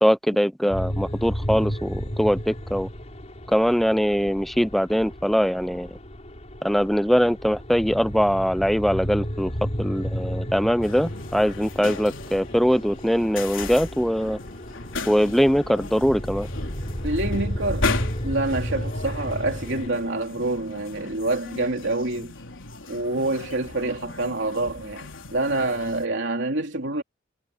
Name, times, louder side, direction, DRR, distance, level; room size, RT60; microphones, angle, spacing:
voice 1, 0.0-2.9 3.5-5.9 6.6-9.5 9.8-14.4 15.1-16.5, equal, ahead, 0.5 m, -22 dB
sound 1, 0.7-19.9, equal, 35° left, 4.3 m, -33 dB
sound 2, 10.8-26.1, left 3 dB, 90° left, 3.5 m, -36 dB
voice 2, 17.0-17.9 18.2-22.3 22.9-27.0, right 2 dB, 65° right, 3.5 m, -27 dB
head